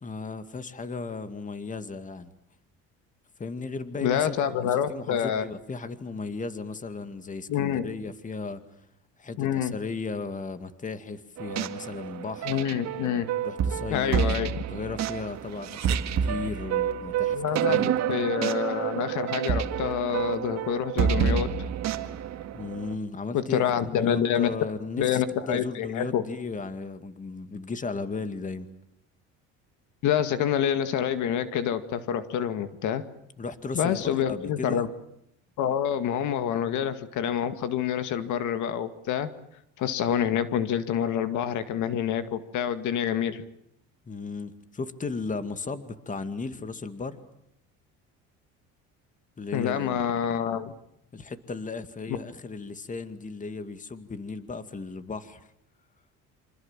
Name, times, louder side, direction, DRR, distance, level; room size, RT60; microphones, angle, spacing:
voice 1, 0.0-2.3 3.4-8.6 9.2-12.5 13.4-14.2 14.7-17.9 22.5-28.7 33.4-34.8 44.1-47.2 49.4-50.0 51.1-55.5, left 4 dB, 25° left, 11 dB, 2.2 m, -35 dB
voice 2, 4.0-5.4 7.5-7.8 9.4-9.7 12.5-13.3 13.9-14.5 17.3-21.5 23.3-24.5 25.0-26.2 30.0-33.0 33.7-34.9 35.6-39.3 39.8-43.4 49.5-50.7, left 9 dB, 70° left, 10 dB, 2.2 m, -27 dB
sound 1, 11.4-22.9, right 8 dB, 60° right, 2.0 m, -28 dB
27.5 x 25.5 x 7.5 m, 0.77 s
cardioid pair, 100°, 31 cm